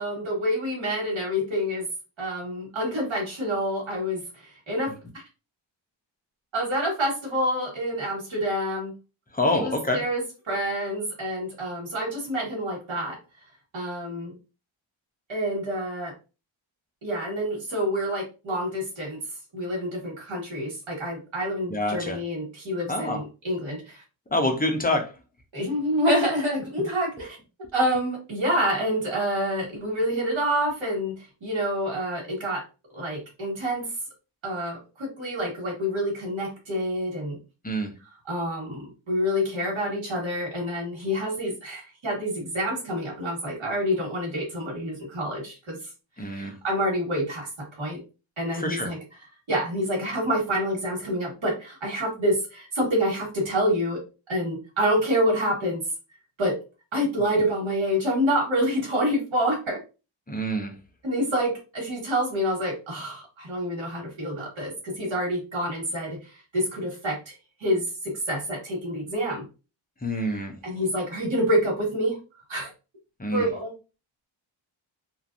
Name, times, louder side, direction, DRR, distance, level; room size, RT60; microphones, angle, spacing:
voice 1, 0.0-1.9 2.2-4.2 4.7-4.9 6.5-8.9 9.5-13.2 13.7-14.3 15.3-16.1 17.0-19.2 19.5-24.0 25.5-27.4 27.7-32.6 32.9-33.8 34.4-37.4 38.2-45.8 46.2-47.5 47.8-48.0 48.4-49.0 49.5-54.0 54.3-55.8 56.4-56.6 56.9-59.8 61.0-66.2 66.5-67.3 67.6-69.4 70.2-72.2 72.5-72.7 73.3-73.7, equal, 70° right, 1.4 m, -27 dB
voice 2, 9.3-10.0 21.7-22.2 22.9-23.2 24.3-25.1 37.6-37.9 46.2-46.5 48.6-48.9 60.3-60.7 70.0-70.5 73.2-73.5, left 1 dB, 20° left, 0.7 m, -26 dB
3.0 x 2.5 x 2.5 m
cardioid pair, 65°, 49 cm